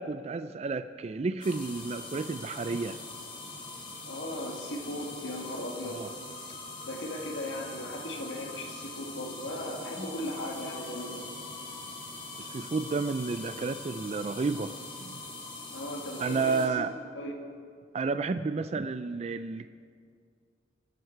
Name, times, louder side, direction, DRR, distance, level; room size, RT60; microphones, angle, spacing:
voice 1, 0.0-3.0 5.8-6.1 12.4-14.7 15.0-15.2 16.2-16.9 17.9-19.7, right 4 dB, 35° right, 11 dB, 0.3 m, -31 dB
sound 1, 1.4-16.7, left 2 dB, 30° left, 2.6 m, -43 dB
voice 2, 4.1-6.1 6.9-11.3 15.7-16.5 17.1-17.3, left 1 dB, 85° left, 1 dB, 2.0 m, -37 dB
24.0 x 9.6 x 4.5 m, 2.2 s
head